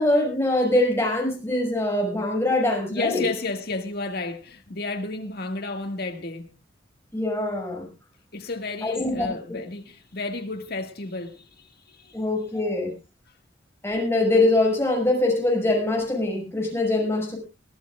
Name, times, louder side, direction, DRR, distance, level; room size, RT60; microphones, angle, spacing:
voice 1, 0.0-3.2 7.1-7.8 8.8-9.6 12.1-12.9 13.8-17.4, left 2 dB, 15° left, 6.2 m, -23 dB
voice 2, 2.9-6.5 8.3-11.4 11.9-12.2, left 3 dB, 55° left, 1.9 m, -32 dB
23.0 x 14.5 x 2.5 m
head